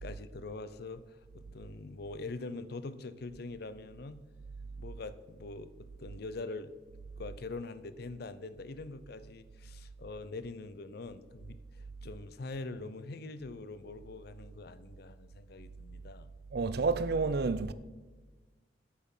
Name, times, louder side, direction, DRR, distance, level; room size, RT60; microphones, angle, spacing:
voice 1, 0.0-4.2 4.8-6.7 7.2-16.3, left 3 dB, 55° left, 0.6 m, -43 dB
voice 2, 16.5-17.7, right 4 dB, 55° right, 0.5 m, -29 dB
9.5 x 8.4 x 5.5 m
head